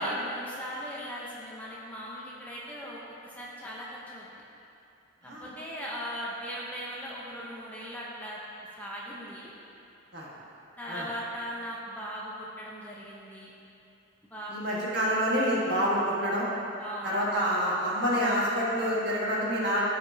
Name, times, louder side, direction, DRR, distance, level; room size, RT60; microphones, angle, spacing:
voice 1, 0.0-4.3 5.2-8.4 8.8-9.5 10.8-13.5 14.3-14.8 16.8-17.2, equal, 10° left, -6 dB, 0.8 m, -39 dB
voice 2, 14.5-16.5 17.0-19.8, equal, 50° right, -6 dB, 1.6 m, -27 dB
14.0 x 5.0 x 2.8 m, 2.7 s
head